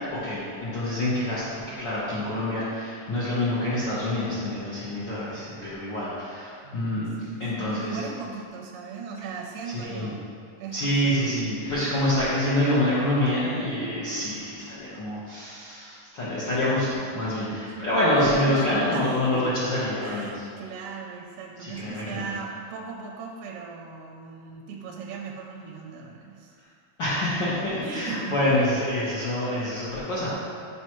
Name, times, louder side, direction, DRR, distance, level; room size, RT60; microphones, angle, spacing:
voice 1, 0.1-7.1 7.4-8.0 9.7-10.1 10.7-20.4 21.6-22.2 27.0-30.3, left 1 dB, 85° left, -11 dB, 1.0 m, -26 dB
voice 2, 6.6-10.2 10.6-11.3 17.7-17.9 18.2-19.1 19.3-19.5 20.0-26.5 27.8-28.4, right 5 dB, 80° right, 0 dB, 1.9 m, -38 dB
8.7 x 4.9 x 3.0 m, 2.4 s
omnidirectional pair, 3.9 m